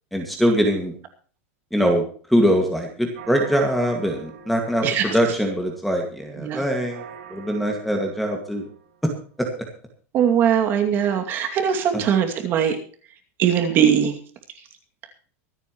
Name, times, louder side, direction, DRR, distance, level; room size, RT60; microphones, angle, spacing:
voice 1, 0.1-1.0 1.7-2.0 2.3-7.0 7.3-8.7 9.4-9.5 11.9-12.0, equal, ahead, 3 dB, 2.0 m, -22 dB
sound 1, 3.1-9.3, right 7 dB, 70° right, 5.6 m, -44 dB
voice 2, 4.8-5.2 6.4-6.6 10.1-12.8 13.4-14.1, right 8 dB, 25° right, 4 dB, 2.5 m, -20 dB
24.5 x 9.2 x 3.1 m, 0.43 s
supercardioid pair, 175°, 8 cm